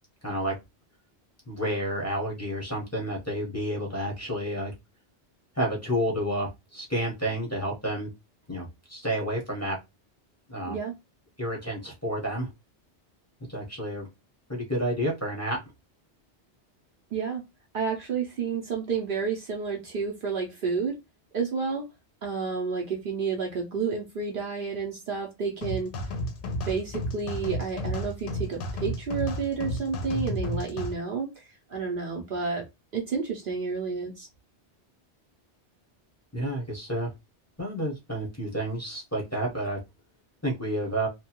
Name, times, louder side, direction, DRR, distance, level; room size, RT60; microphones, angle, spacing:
voice 1, 0.2-0.5 1.5-4.7 5.5-8.1 8.5-9.8 10.5-10.8 11.4-12.5 13.5-14.1 14.5-15.6 36.3-37.1 37.6-39.8 40.4-41.1, right 1 dB, 15° left, -3 dB, 0.8 m, -30 dB
voice 2, 17.1-17.4 17.7-21.0 21.3-21.9 22.2-25.9 26.7-32.6 32.9-34.3, right 5 dB, 60° right, 0 dB, 0.7 m, -30 dB
sound 1, 25.6-30.9, left 1 dB, 60° left, 0.7 m, -32 dB
2.7 x 2.2 x 2.8 m, 0.22 s
omnidirectional pair, 1.2 m